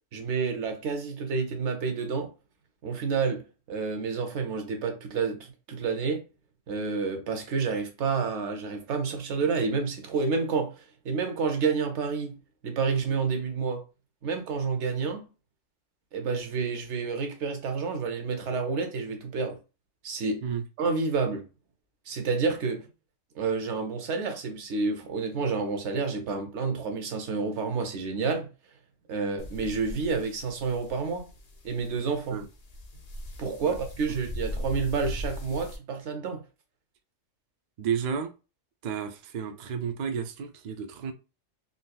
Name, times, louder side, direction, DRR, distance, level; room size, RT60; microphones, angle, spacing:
voice 1, 0.1-2.3 2.8-3.4 3.7-6.2 6.7-12.3 12.6-13.8 14.2-15.3 16.1-19.6 20.0-20.4 20.8-21.4 22.1-22.9 23.4-28.5 29.1-31.3 31.6-32.4 33.4-36.4, right 4 dB, 65° right, 1.0 m, -29 dB
sound 1, 29.4-35.8, left 1 dB, 45° left, 0.5 m, -39 dB
voice 2, 37.8-38.3 38.8-41.1, right 7 dB, 80° right, 0.4 m, -32 dB
3.8 x 2.6 x 2.3 m
omnidirectional pair, 1.3 m